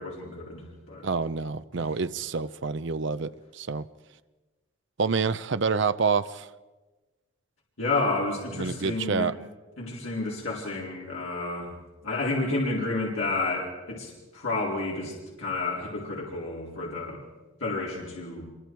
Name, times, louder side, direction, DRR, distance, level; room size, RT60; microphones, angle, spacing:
voice 1, 0.0-1.1 1.7-1.9 7.8-9.3 9.8-11.7 12.0-17.2 17.6-18.5, left 2 dB, 85° left, 4.0 m, -30 dB
voice 2, 1.0-3.8 5.0-6.5 8.6-9.3, right 5 dB, 65° right, 0.6 m, -27 dB
25.5 x 23.0 x 4.6 m
head